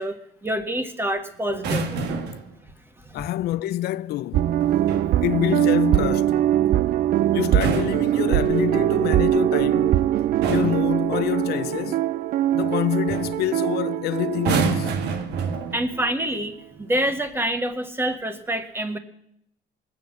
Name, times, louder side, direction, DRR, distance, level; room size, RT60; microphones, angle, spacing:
voice 1, 0.0-2.0 3.1-3.2 15.7-19.0, right 1 dB, 15° right, 1.7 m, -27 dB
sound 1, 1.5-2.5 4.6-5.2 7.4-8.8 9.8-10.0 10.4-10.9 12.6-12.8 13.1-13.4 14.3-16.0 16.9-17.2, right 5 dB, 80° right, 1.8 m, -28 dB
voice 2, 3.1-4.5 5.2-6.4 7.3-10.0 10.5-12.0 12.5-14.9, left 14 dB, 70° left, 0.5 m, -26 dB
sound 2, 4.3-15.7 16.0-16.1, right 12 dB, 60° right, 0.5 m, -22 dB
20.0 x 8.6 x 6.4 m
cardioid pair, 110°, 17 cm